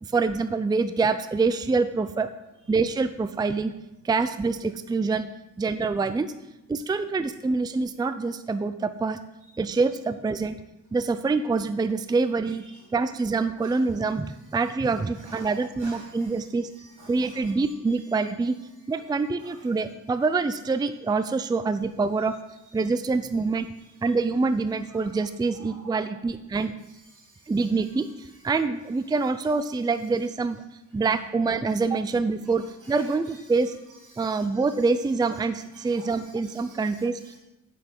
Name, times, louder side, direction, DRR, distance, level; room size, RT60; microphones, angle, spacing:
voice 1, 0.0-2.3 2.7-3.7 4.0-5.3 5.6-6.3 6.7-9.2 9.6-10.6 10.9-12.6 12.9-16.7 17.1-18.5 18.9-22.3 22.7-23.7 24.0-26.7 27.5-30.6 30.9-33.8 34.2-37.2, right 4 dB, 15° right, 10 dB, 0.4 m, -25 dB
voice 2, 15.1-16.4 16.8-17.5 17.9-18.0 19.4-19.7 23.8-24.1 24.9-25.2 25.5-26.1 26.9-27.6 29.2-29.3 32.4-33.1 34.1-34.7 35.6-37.4, right 2 dB, 85° right, -3 dB, 3.4 m, -50 dB
7.9 x 6.5 x 5.3 m, 0.92 s
cardioid pair, 95°, 30 cm